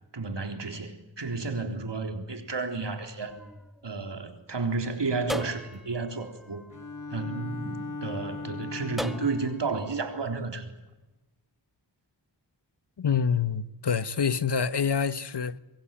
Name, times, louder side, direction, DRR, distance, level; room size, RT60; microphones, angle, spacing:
voice 1, 0.1-3.4 3.8-6.6 7.1-10.7, right 3 dB, 70° right, 3.9 m, -32 dB
sound 1, 3.2-4.6 5.3-7.8 9.0-10.4, equal, ahead, 1.5 m, -41 dB
Bowed string instrument, 6.7-9.8, left 3 dB, 45° left, 2.3 m, -38 dB
voice 2, 13.0-15.6, left 6 dB, 65° left, 1.2 m, -26 dB
25.0 x 23.0 x 9.1 m
wide cardioid pair, 75°, 44 cm